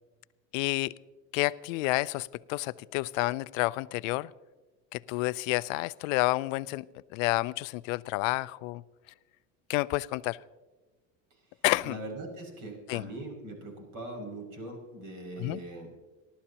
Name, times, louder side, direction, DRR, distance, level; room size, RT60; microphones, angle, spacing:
voice 1, 0.5-1.0 1.3-4.3 4.9-8.8 9.7-10.4 11.6-12.0 12.9-13.1 15.4-15.6, left 21 dB, 75° left, 18 dB, 0.6 m, -30 dB
voice 2, 11.8-15.9, right 2 dB, 55° right, 1 dB, 6.1 m, -41 dB
29.5 x 12.5 x 2.9 m, 1.2 s
supercardioid pair, 120°, 39 cm